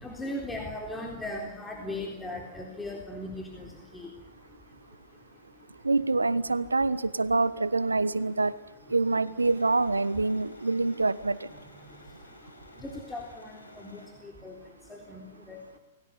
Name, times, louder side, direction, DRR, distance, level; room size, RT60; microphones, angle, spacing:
voice 1, 0.0-3.7 3.9-4.1 12.8-14.0 14.4-14.5 14.9-15.2 15.5-15.6, left 1 dB, 10° left, 0 dB, 3.9 m, -37 dB
voice 2, 5.8-8.5 8.9-11.5, right 3 dB, 85° right, 17 dB, 1.1 m, -26 dB
sound 1, 9.3-14.1, left 2 dB, 85° left, 6.0 m, -54 dB
29.5 x 21.0 x 7.0 m, 1.1 s
figure-of-eight pair, 105°, 0 cm